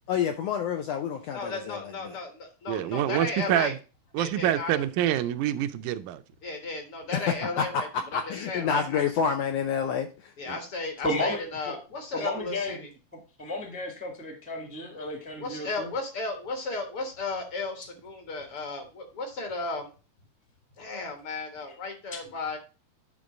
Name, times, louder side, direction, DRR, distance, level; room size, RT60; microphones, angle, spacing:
voice 1, 0.1-1.9 7.1-7.6 8.1-10.3, left 7 dB, 75° left, 1.5 m, -28 dB
voice 2, 1.3-3.7 4.2-4.8 6.4-9.0 10.4-12.9 15.3-19.9 20.8-22.6, left 3 dB, 50° left, 2.0 m, -34 dB
voice 3, 2.7-3.8 4.1-6.2 10.5-10.6, right 12 dB, 85° right, 2.1 m, -26 dB
voice 4, 11.0-11.7 12.1-12.8 13.4-15.9, left 1 dB, 10° right, 0.7 m, -33 dB
9.7 x 3.6 x 5.2 m
omnidirectional pair, 3.5 m